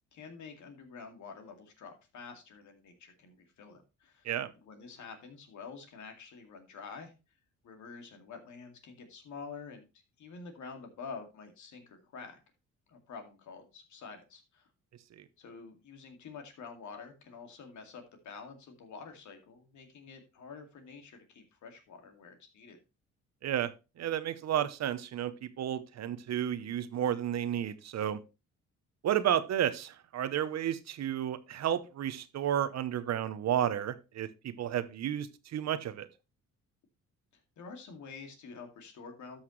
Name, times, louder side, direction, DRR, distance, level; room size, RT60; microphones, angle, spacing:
voice 1, 0.1-4.3 4.6-7.1 7.6-9.9 10.2-12.4 12.9-14.7 15.4-22.8 37.3-39.4, left 5 dB, 70° left, 2.4 m, -48 dB
voice 2, 23.4-28.2 29.0-36.1, right 10 dB, 60° right, 0.9 m, -32 dB
13.0 x 5.8 x 3.1 m
cardioid pair, 90°, 30 cm